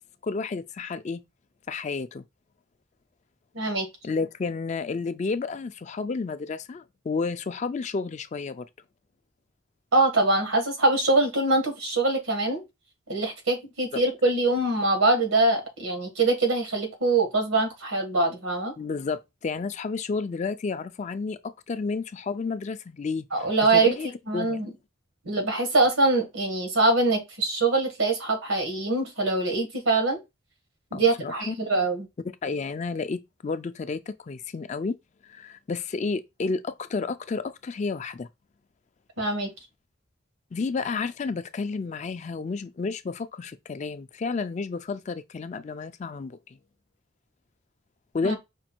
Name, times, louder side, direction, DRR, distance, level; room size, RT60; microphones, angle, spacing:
voice 1, 0.2-1.2 1.7-2.2 4.0-8.6 18.8-23.3 23.7-24.1 24.3-24.6 30.9-31.5 32.4-35.0 35.2-38.3 40.5-46.6 48.1-48.4, left 4 dB, 35° left, 0.3 m, -31 dB
voice 2, 3.5-3.9 9.9-12.6 13.1-18.7 23.3-23.9 24.3-24.7 25.2-30.2 30.9-32.1 39.2-39.5 48.2-48.4, right 2 dB, 85° right, 1.6 m, -23 dB
5.2 x 2.3 x 4.4 m
head